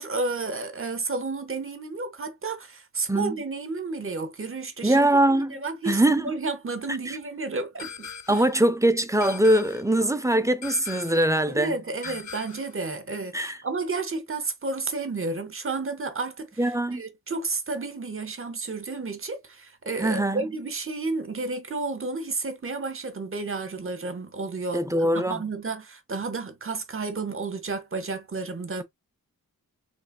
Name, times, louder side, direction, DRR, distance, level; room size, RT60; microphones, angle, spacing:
voice 1, 0.0-8.4 11.5-16.5 16.9-24.9 25.1-28.8, right 3 dB, 35° right, 1.0 m, -32 dB
voice 2, 4.8-5.6 5.9-6.3 7.1-7.2 8.3-11.8 13.3-13.6 16.6-17.0 20.0-20.4 24.7-25.4, right 1 dB, 10° right, 0.5 m, -22 dB
sound 1, 7.8-8.5 9.2-9.9 10.6-11.3 12.0-12.8, left 6 dB, 55° left, 0.7 m, -40 dB
3.9 x 3.3 x 2.3 m
wide cardioid pair, 85°, 35 cm